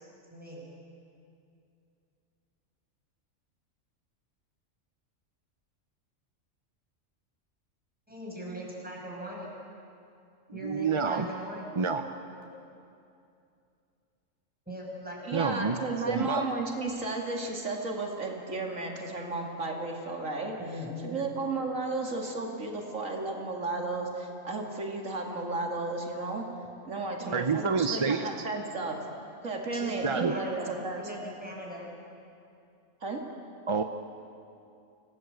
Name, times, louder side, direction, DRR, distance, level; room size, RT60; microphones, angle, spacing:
voice 1, 0.3-0.7 8.1-9.5 10.5-11.7 12.3-12.5 14.7-15.2 20.6-21.2 27.2-27.4 29.7-31.9, equal, 5° right, -4 dB, 5.8 m, -40 dB
voice 2, 10.6-11.3 11.8-12.0 15.3-15.8 16.1-16.5 27.3-28.3 30.0-30.3 33.7-33.8, right 5 dB, 30° right, 7 dB, 0.6 m, -28 dB
voice 3, 15.2-20.6 21.0-26.4 26.8-29.0 29.4-31.0 33.0-33.2, right 3 dB, 80° right, 1 dB, 2.7 m, -33 dB
26.0 x 17.0 x 8.0 m, 2.5 s
omnidirectional pair, 1.3 m